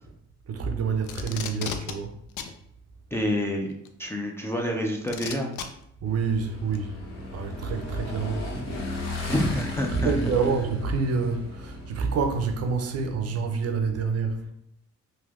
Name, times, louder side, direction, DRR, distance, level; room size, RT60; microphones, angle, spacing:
voice 1, 0.5-2.1 6.0-7.0 7.3-8.5 9.9-14.5, right 5 dB, 55° right, 5 dB, 0.5 m, -27 dB
Packing tape duct tape, 1.0-1.9 2.4-2.5 3.8-3.9 5.1-5.6 6.7-6.8, left 7 dB, 75° left, 0.4 m, -33 dB
voice 2, 3.1-3.7 4.0-5.5 9.3-10.3, left 1 dB, 10° left, 0 dB, 0.4 m, -28 dB
Motorcycle / Engine, 6.1-13.1, left 1 dB, 60° left, 0.8 m, -36 dB
3.3 x 2.7 x 2.4 m, 0.76 s
cardioid pair, 90°, 30 cm